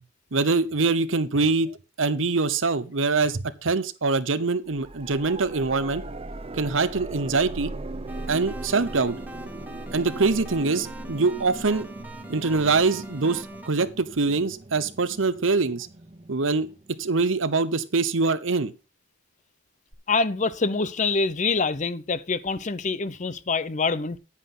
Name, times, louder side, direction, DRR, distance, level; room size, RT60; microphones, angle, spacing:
voice 1, 0.3-1.7 2.0-6.0 6.6-7.7 8.3-9.2 9.9-11.9 12.3-15.9 16.3-16.7 17.0-18.7, right 3 dB, 80° right, 0.9 m, -24 dB
sound 1, 4.7-17.6 19.9-20.0, right 2 dB, 30° right, 0.8 m, -39 dB
sound 2, 8.1-13.7, right 1 dB, 10° right, 1.2 m, -43 dB
voice 2, 20.1-24.2, left 4 dB, 40° left, 0.7 m, -25 dB
10.0 x 9.8 x 3.8 m
head